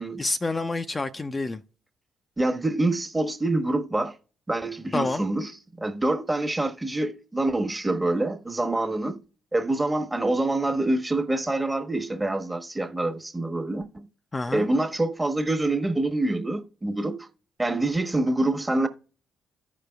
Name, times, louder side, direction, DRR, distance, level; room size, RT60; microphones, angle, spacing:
voice 1, 0.2-1.6 4.9-5.2 14.3-14.6, left 2 dB, 25° left, 0.6 m, -28 dB
voice 2, 2.4-4.1 4.5-5.5 5.8-9.2 9.5-14.1 14.5-17.3 17.6-18.9, right 2 dB, 15° right, 1.3 m, -26 dB
15.0 x 5.1 x 2.3 m
hypercardioid pair, 45°, 0 cm